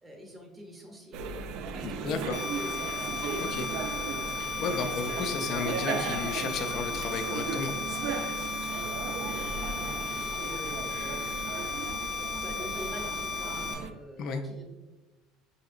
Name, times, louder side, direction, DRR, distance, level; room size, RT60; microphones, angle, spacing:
voice 1, 0.0-1.3 1.6-3.2 9.8-11.7 12.2-14.6, equal, 10° right, 1 dB, 0.7 m, -45 dB
sound 1, 1.1-13.9, right 6 dB, 60° right, 0.3 m, -36 dB
voice 2, 1.8-2.4 3.4-3.7 4.3-7.7 14.2-14.4, left 5 dB, 45° left, 6 dB, 0.4 m, -33 dB
sound 2, 2.3-13.7, left 5 dB, 85° left, 0.8 m, -35 dB
5.5 x 2.7 x 2.5 m, 1.1 s
cardioid pair, 155°, 0 cm